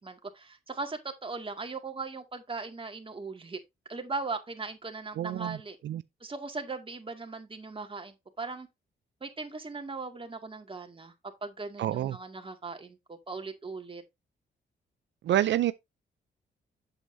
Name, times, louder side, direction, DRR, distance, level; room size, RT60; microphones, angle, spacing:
voice 1, 0.0-3.6 3.9-5.8 6.2-8.7 9.2-11.1 11.4-14.0, right 3 dB, 30° right, 2.1 m, -39 dB
voice 2, 5.2-5.6 5.8-6.0 11.8-12.2 15.2-15.7, right 12 dB, 70° right, 0.5 m, -27 dB
8.0 x 7.9 x 2.7 m
cardioid pair, 75°, 19 cm